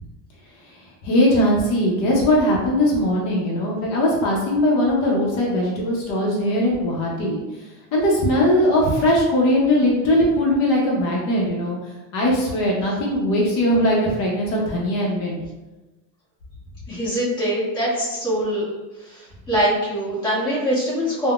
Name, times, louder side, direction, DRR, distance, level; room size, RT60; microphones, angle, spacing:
voice 1, 1.0-7.4 7.9-11.8 12.1-15.4, left 1 dB, 55° left, -3 dB, 0.7 m, -20 dB
voice 2, 16.9-18.6 19.0-21.3, equal, 15° left, -9 dB, 0.8 m, -23 dB
3.5 x 2.0 x 2.3 m, 1.1 s
cardioid pair, 175°, 36 cm